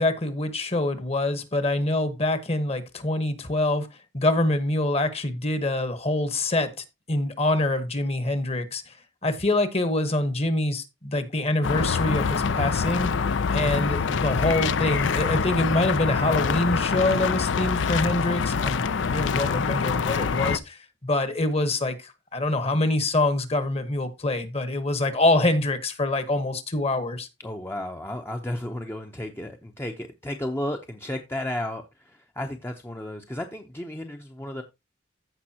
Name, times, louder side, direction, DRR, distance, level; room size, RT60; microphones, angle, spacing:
voice 1, 0.0-3.9 4.1-8.9 9.2-13.1 13.5-18.8 19.1-27.3, left 2 dB, 30° left, 1.1 m, -25 dB
sound 1, 11.6-20.6, left 5 dB, 75° left, 0.5 m, -25 dB
voice 2, 27.4-34.6, left 1 dB, 10° left, 0.7 m, -33 dB
15.0 x 5.2 x 2.8 m
head